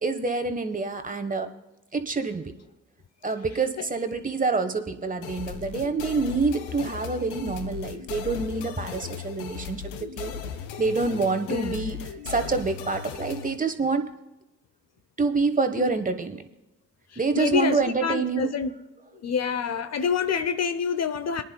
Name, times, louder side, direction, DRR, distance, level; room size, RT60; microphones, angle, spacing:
voice 1, 0.0-1.5 1.9-2.5 3.2-10.3 10.8-14.1 15.2-16.4 17.2-18.5, right 4 dB, 20° right, 1.3 m, -27 dB
sound 1, 5.2-13.6, left 8 dB, 85° left, 0.7 m, -37 dB
voice 2, 11.5-11.9 17.1-18.7 19.2-21.4, left 6 dB, 45° left, 0.8 m, -27 dB
23.5 x 10.0 x 2.3 m
hypercardioid pair, 45°, 36 cm